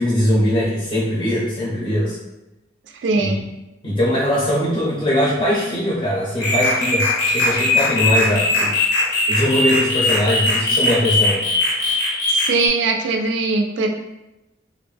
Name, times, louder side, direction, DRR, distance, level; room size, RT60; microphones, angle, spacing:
voice 1, 0.0-2.2 3.1-3.4 3.8-8.7 9.3-11.4, left 1 dB, 25° left, -7 dB, 0.5 m, -21 dB
voice 2, 3.0-3.4 12.3-13.9, right 3 dB, 75° right, 3 dB, 0.3 m, -20 dB
sound 1, 6.4-12.7, left 2 dB, 85° left, 0.8 m, -20 dB
2.4 x 2.1 x 3.2 m, 0.95 s
head